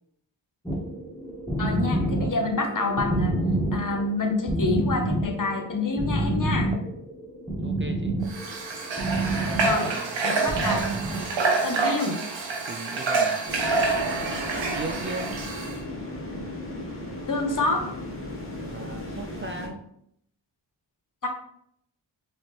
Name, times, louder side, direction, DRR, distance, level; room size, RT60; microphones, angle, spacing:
sound 1, 0.7-11.4, right 1 dB, 10° left, 1.0 m, -28 dB
voice 1, 1.6-3.3 3.7-6.7 9.6-9.9 10.2-10.8 11.6-12.2 17.3-17.9 21.2-21.3, left 3 dB, 45° left, 4 dB, 0.9 m, -27 dB
voice 2, 7.6-8.2 9.8-10.2 12.7-13.4 13.8-15.4 18.7-19.8, right 2 dB, 30° right, 5 dB, 0.4 m, -38 dB
Water / Water tap faucet, 8.3-15.8, right 3 dB, 75° right, 0.8 m, -27 dB
sound 2, 13.5-19.7, left 1 dB, 30° left, 1.2 m, -36 dB
4.2 x 2.9 x 3.1 m, 0.72 s
cardioid pair, 45°, 45 cm